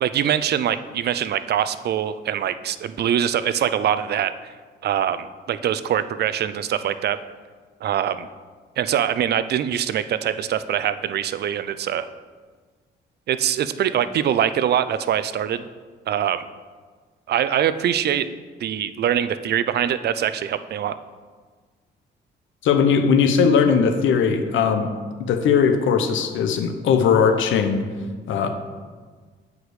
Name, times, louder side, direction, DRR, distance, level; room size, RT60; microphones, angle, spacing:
voice 1, 0.0-4.5 4.8-7.2 7.8-8.3 8.8-12.1 13.3-15.6 16.1-16.4 17.3-18.3 18.6-21.0, right 10 dB, 55° right, 13 dB, 0.4 m, -23 dB
voice 2, 22.6-24.9 25.3-27.8 28.3-28.5, left 6 dB, 75° left, 7 dB, 0.8 m, -19 dB
8.0 x 4.8 x 4.9 m, 1.5 s
cardioid pair, 90°, 20 cm